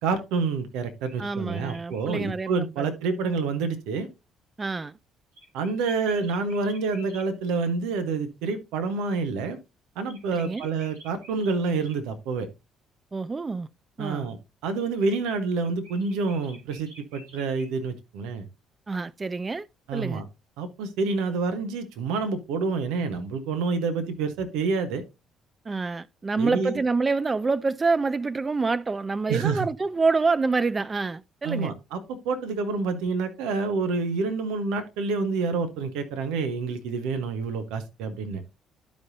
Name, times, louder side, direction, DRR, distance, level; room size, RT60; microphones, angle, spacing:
voice 1, 0.0-4.1 5.5-9.6 10.0-12.5 14.0-14.4 14.6-18.5 19.9-20.2 20.6-25.0 26.4-26.8 29.3-29.7 31.4-38.4, right 4 dB, 75° right, 1.0 m, -28 dB
sound 1, 0.8-2.2 5.3-7.3 10.0-12.0 15.5-17.7, right 1 dB, 90° right, 3.5 m, -50 dB
voice 2, 1.2-2.5 2.8-2.9 4.6-4.9 10.3-10.6 13.1-13.7 14.0-14.3 18.9-19.7 19.9-20.2 25.7-31.7, right 4 dB, 30° right, 0.3 m, -27 dB
12.0 x 5.2 x 2.7 m
hypercardioid pair, 50°, 0 cm